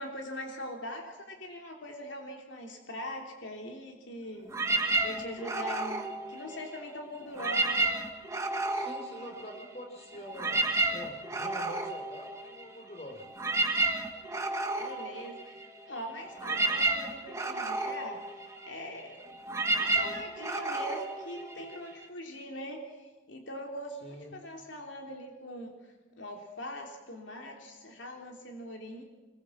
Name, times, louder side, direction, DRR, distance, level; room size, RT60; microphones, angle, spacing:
voice 1, 0.0-7.9 14.7-18.2 18.6-19.2 19.8-29.0, left 1 dB, 70° left, 2 dB, 3.2 m, -42 dB
sound 1, 4.5-6.9 7.3-9.8 10.1-22.1, right 2 dB, 15° right, 1.8 m, -32 dB
voice 2, 8.7-13.3 13.5-13.8 24.0-24.3, equal, 35° left, 3 dB, 4.5 m, -45 dB
25.5 x 21.5 x 7.3 m, 1.2 s
head